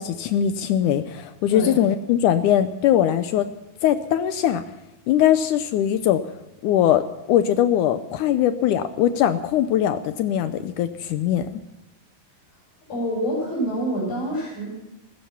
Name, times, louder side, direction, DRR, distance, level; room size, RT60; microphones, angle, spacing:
voice 1, 0.0-3.5 3.8-4.6 5.1-6.2 6.6-7.0 7.3-11.6, left 10 dB, 80° left, 11 dB, 1.8 m, -21 dB
voice 2, 12.9-14.7, right 1 dB, 55° left, -4 dB, 7.3 m, -26 dB
15.5 x 15.0 x 5.8 m, 0.98 s
omnidirectional pair, 4.3 m